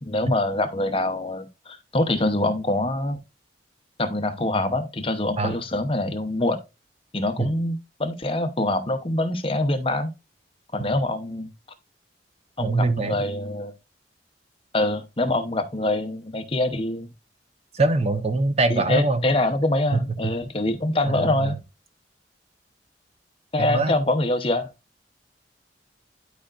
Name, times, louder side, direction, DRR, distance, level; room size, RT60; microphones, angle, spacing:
voice 1, 0.0-3.2 4.0-6.6 7.1-10.1 10.7-11.5 12.6-13.7 14.7-17.1 18.7-21.6 23.5-24.7, left 1 dB, 30° left, 0.8 m, -24 dB
voice 2, 12.6-13.2 17.7-19.2 19.9-20.0 21.1-21.5 23.6-23.9, right 3 dB, 35° right, 0.8 m, -23 dB
11.5 x 5.0 x 2.5 m
head